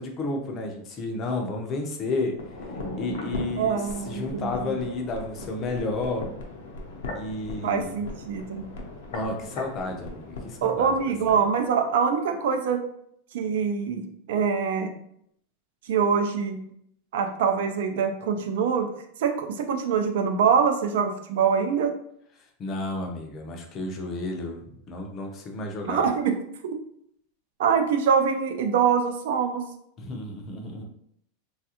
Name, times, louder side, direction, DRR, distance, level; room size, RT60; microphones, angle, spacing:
voice 1, 0.0-2.3 3.0-6.3 7.1-7.9 9.1-10.9 11.3-11.5 22.6-24.6 24.9-26.1 30.0-30.9, left 2 dB, 25° left, 2 dB, 0.5 m, -31 dB
sound 1, 2.3-11.4 11.7-11.8, left 2 dB, 85° left, 0.7 m, -38 dB
voice 2, 3.6-4.7 7.6-8.7 10.6-12.8 13.3-14.0 14.3-14.9 15.9-16.6 17.1-18.9 19.2-21.9 25.9-26.3 27.6-29.6, right 6 dB, 70° right, 5 dB, 0.5 m, -24 dB
3.2 x 2.3 x 2.8 m, 0.71 s
supercardioid pair, 165°, 0 cm